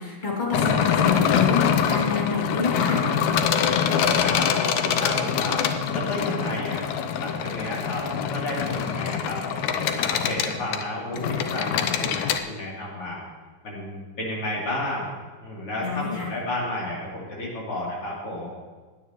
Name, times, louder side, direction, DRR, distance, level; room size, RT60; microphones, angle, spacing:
voice 1, 0.0-3.0 15.8-16.3, left 5 dB, 15° left, -4 dB, 2.3 m, -27 dB
sound 1, 0.5-12.4, left 7 dB, 85° left, 1.6 m, -24 dB
voice 2, 4.2-5.6 5.9-6.9 7.2-9.4 9.7-13.2 13.6-15.1 15.4-18.5, left 1 dB, 40° left, -5 dB, 3.9 m, -32 dB
20.0 x 9.4 x 3.1 m, 1.4 s
omnidirectional pair, 4.3 m